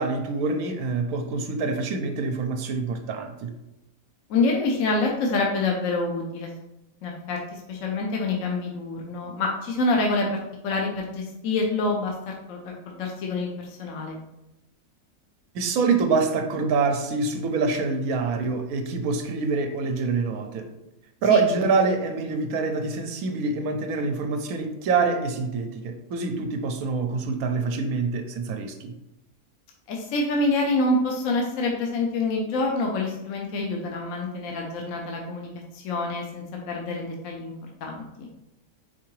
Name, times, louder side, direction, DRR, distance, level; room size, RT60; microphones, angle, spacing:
voice 1, 0.0-3.5 15.5-20.7 21.2-28.9, right 4 dB, 85° right, 5 dB, 1.1 m, -25 dB
voice 2, 4.3-6.5 7.0-10.3 10.6-14.2 21.3-21.4 29.9-35.5 35.7-37.5 37.8-38.3, left 2 dB, 70° left, 0 dB, 1.0 m, -26 dB
4.5 x 3.7 x 3.1 m, 0.91 s
omnidirectional pair, 1.5 m